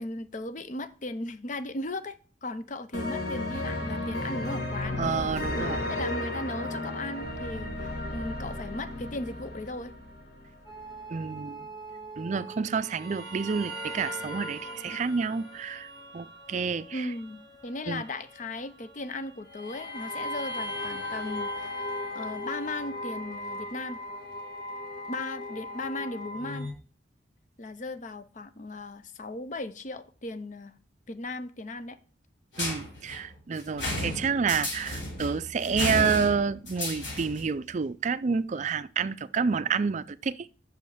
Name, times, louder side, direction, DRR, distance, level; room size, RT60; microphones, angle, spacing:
voice 1, 0.0-2.2 2.4-5.0 5.5-9.9 16.9-24.0 25.1-26.7 27.6-30.7 31.1-32.0, left 2 dB, 45° left, 0.6 m, -37 dB
sound 1, 2.9-10.6, left 1 dB, 65° left, 1.5 m, -33 dB
voice 2, 5.0-5.8 11.1-11.6 12.2-15.9 16.1-17.0 17.9-18.0 32.6-40.5, right 5 dB, 40° right, 0.4 m, -29 dB
sound 2, 10.6-26.7, left 1 dB, 25° left, 2.2 m, -39 dB
sound 3, 32.5-37.5, left 1 dB, 80° left, 4.0 m, -33 dB
6.3 x 5.4 x 6.4 m
head